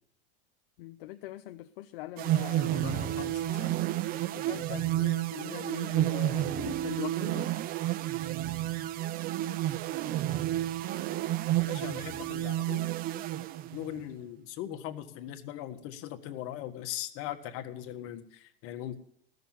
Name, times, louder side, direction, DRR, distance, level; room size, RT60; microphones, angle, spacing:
voice 1, 0.8-3.3 4.3-7.5, left 16 dB, 65° left, 9 dB, 0.7 m, -42 dB
sound 1, 2.2-14.0, right 14 dB, 30° right, 0.4 m, -31 dB
voice 2, 2.7-3.7 11.7-12.9 13.7-19.0, left 11 dB, 50° left, 8 dB, 1.5 m, -40 dB
15.0 x 6.8 x 9.1 m, 0.67 s
supercardioid pair, 125°, 29 cm